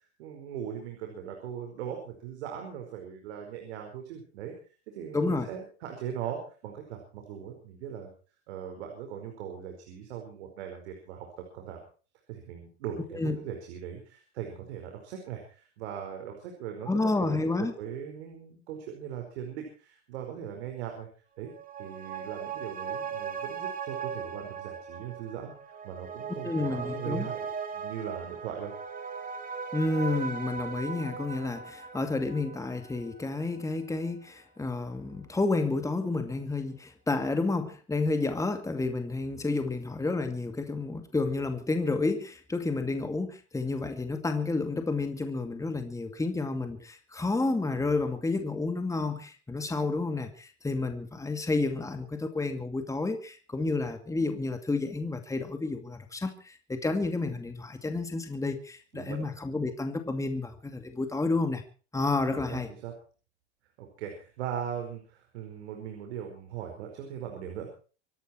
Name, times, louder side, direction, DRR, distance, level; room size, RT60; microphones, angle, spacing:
voice 1, 0.2-4.5 4.9-8.1 8.5-11.3 11.5-11.8 12.3-16.9 17.2-21.1 21.4-21.5 21.8-27.5 27.7-28.7 58.9-59.2 62.3-62.9 63.8-67.7, right 9 dB, 75° right, 5.0 m, -39 dB
voice 2, 5.1-5.5 13.1-13.4 16.9-17.7 26.4-27.3 29.7-61.6 61.9-62.7, left 3 dB, 10° left, 2.3 m, -30 dB
sound 1, 21.4-34.3 34.6-34.7, right 6 dB, 25° right, 3.2 m, -39 dB
25.5 x 11.0 x 4.5 m
hypercardioid pair, 105°, 33 cm